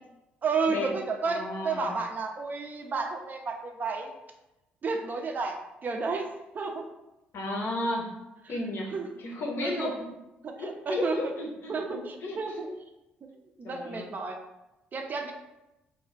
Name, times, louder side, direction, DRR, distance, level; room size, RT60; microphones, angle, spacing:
voice 1, 0.4-4.1 4.8-5.6 5.8-6.3 6.5-6.8 8.9-9.1 9.6-9.9 10.4-11.3 11.7-12.7 13.6-14.4 14.9-15.3, right 4 dB, 35° right, 3 dB, 0.4 m, -31 dB
voice 2, 1.3-2.0 7.3-8.1 8.5-8.9 9.2-9.9 10.6-12.4 13.6-14.1, left 2 dB, 45° left, 0 dB, 0.7 m, -33 dB
2.3 x 2.2 x 3.9 m, 0.97 s
figure-of-eight pair, 45°, 5 cm